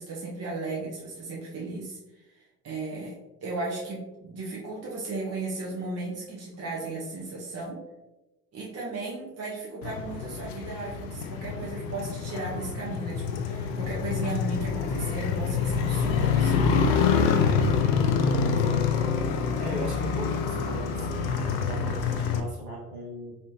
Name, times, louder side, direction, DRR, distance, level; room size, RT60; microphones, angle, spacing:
voice 1, 0.0-7.8 8.5-16.8, right 3 dB, 35° right, -4 dB, 0.9 m, -35 dB
Motorcycle, 9.8-22.4, left 6 dB, 55° left, 0.5 m, -26 dB
voice 2, 18.6-18.9 19.2-23.4, right 1 dB, 55° right, -3 dB, 1.3 m, -39 dB
3.3 x 2.7 x 3.0 m, 1.0 s
hypercardioid pair, 60°, 45 cm